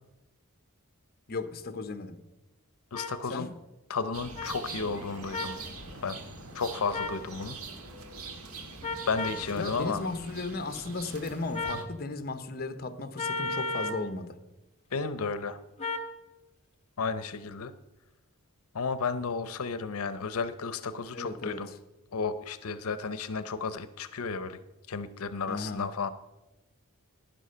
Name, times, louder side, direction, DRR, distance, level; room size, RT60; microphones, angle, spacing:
voice 1, 1.3-2.2 3.3-3.5 9.5-14.3 21.1-21.7 25.5-25.9, left 3 dB, 45° left, 0.8 m, -35 dB
voice 2, 2.9-3.5 3.9-5.6 6.0-6.2 6.5-7.6 9.1-10.0 14.9-15.6 17.0-17.7 18.7-21.7 22.1-24.6 24.9-26.1, left 4 dB, 80° left, 0.6 m, -33 dB
sound 1, 2.9-3.1 4.4-4.5 5.3-5.6 6.9-7.2 8.8-9.4 11.5-11.9 13.2-14.0 15.8-16.1, left 2 dB, 30° left, 1.1 m, -33 dB
sound 2, 4.1-11.8, right 3 dB, 85° right, 1.6 m, -43 dB
11.5 x 10.5 x 5.6 m
head